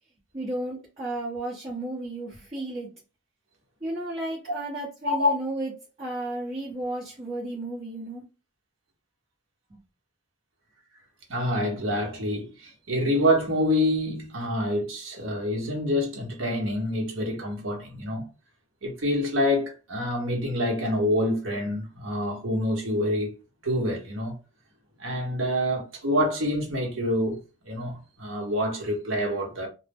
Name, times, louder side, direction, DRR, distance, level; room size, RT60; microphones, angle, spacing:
voice 1, 0.3-2.9 3.8-5.7 6.0-8.2 9.7-9.8, right 2 dB, 30° right, 0.9 m, -33 dB
voice 2, 11.3-18.3 18.8-23.3 23.6-24.4 25.0-27.4 27.6-29.7, left 1 dB, 65° right, 0.9 m, -26 dB
2.1 x 2.0 x 3.4 m
head